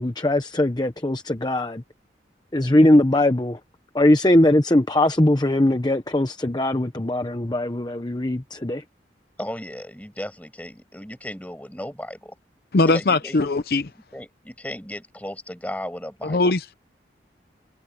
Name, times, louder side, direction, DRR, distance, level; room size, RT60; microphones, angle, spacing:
voice 1, 0.0-1.8 2.5-3.6 3.9-8.8, left 1 dB, 25° left, 0.9 m, -20 dB
voice 2, 9.4-12.4 12.9-13.4 14.1-16.4, left 1 dB, 10° left, 7.5 m, -35 dB
voice 3, 12.7-13.9 16.2-16.7, left 2 dB, 55° left, 0.7 m, -20 dB
head